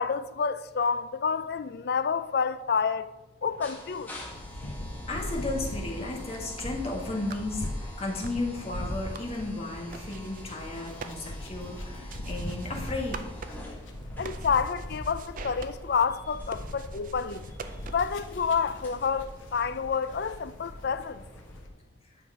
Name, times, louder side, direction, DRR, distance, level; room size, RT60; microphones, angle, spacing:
voice 1, 0.0-3.1 3.4-4.1 14.2-17.4 17.9-21.2, left 6 dB, 55° left, 0.4 m, -29 dB
sound 1, 3.4-21.6, left 1 dB, 10° left, 1.7 m, -48 dB
sound 2, 4.3-21.7, left 1 dB, 75° left, 1.1 m, -40 dB
voice 2, 5.1-13.3, left 2 dB, 30° left, 1.6 m, -34 dB
sound 3, 6.3-18.2, right 5 dB, 40° right, 0.5 m, -47 dB
9.2 x 5.8 x 4.9 m
head